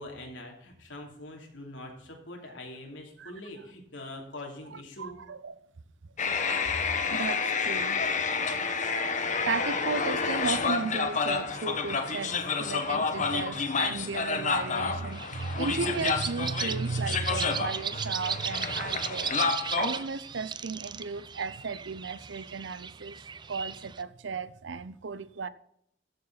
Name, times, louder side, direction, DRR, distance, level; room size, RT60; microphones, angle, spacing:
voice 1, 0.0-5.2 6.7-6.8, left 1 dB, 80° left, 3.0 m, -43 dB
voice 2, 4.7-5.6 6.4-6.6 7.1-8.1 9.5-19.3 19.7-23.2 23.5-25.5, right 4 dB, 75° right, 0.6 m, -35 dB
sound 1, 6.2-20.0, left 5 dB, 40° left, 1.1 m, -29 dB
sound 2, 15.1-24.0, right 7 dB, 25° right, 0.4 m, -37 dB
13.5 x 6.9 x 4.0 m
head